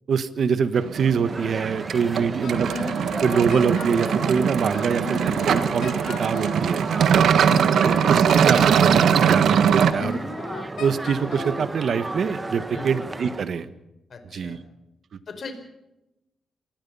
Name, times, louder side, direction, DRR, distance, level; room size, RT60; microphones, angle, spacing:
voice 1, 0.1-2.7 3.2-5.2 5.5-6.9 7.8-10.2 10.8-13.7 14.3-14.6, right 6 dB, 60° right, 12 dB, 1.5 m, -24 dB
sound 1, 0.8-9.9, right 8 dB, 80° right, 1.4 m, -21 dB
sound 2, 1.3-13.5, right 2 dB, 20° right, 1.3 m, -34 dB
Wind instrument woodwind instrument, 2.4-4.3 4.7-6.7 7.2-9.2 9.7-11.6, left 3 dB, 75° left, 6.1 m, -35 dB
voice 2, 7.2-7.9 12.7-12.9 14.1-14.6 15.3-15.5, left 4 dB, 50° left, 7 dB, 4.5 m, -39 dB
27.0 x 20.0 x 5.7 m, 0.92 s
cardioid pair, 110°, 0 cm